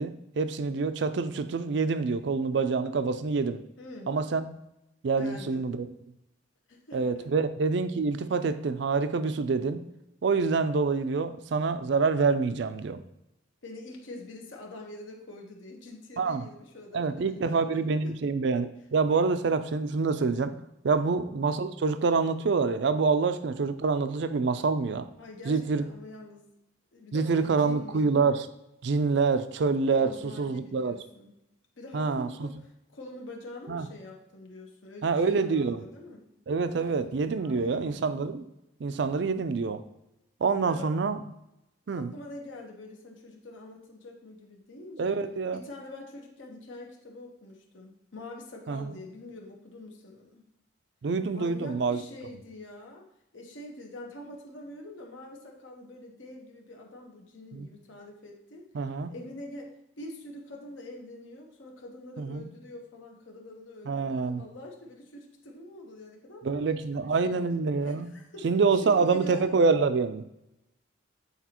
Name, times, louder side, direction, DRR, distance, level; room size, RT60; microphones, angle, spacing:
voice 1, 0.0-3.6 4.1-4.5 5.0-5.9 6.9-9.8 10.2-13.0 16.2-16.4 16.9-20.5 20.8-25.1 25.5-25.8 27.1-28.5 28.8-31.0 31.9-32.5 33.7-33.9 35.0-35.8 36.5-38.4 38.8-39.8 40.4-41.2 41.9-42.1 45.0-45.6 48.7-49.0 51.0-52.0 57.5-57.7 58.7-59.1 62.2-62.4 63.9-64.4 66.4-68.1 68.4-70.2, right 4 dB, 60° right, 11 dB, 0.4 m, -26 dB
voice 2, 3.8-4.1 5.2-5.6 6.7-7.2 13.6-18.2 20.9-21.1 25.2-26.4 26.9-28.2 29.9-31.3 31.8-36.2 37.4-37.9 40.6-40.9 42.0-45.2 45.5-50.4 51.3-53.1 53.3-59.7 60.0-67.6 67.8-68.5 68.8-69.6, left 2 dB, 75° left, 0 dB, 1.1 m, -45 dB
8.1 x 4.0 x 2.9 m, 0.85 s
head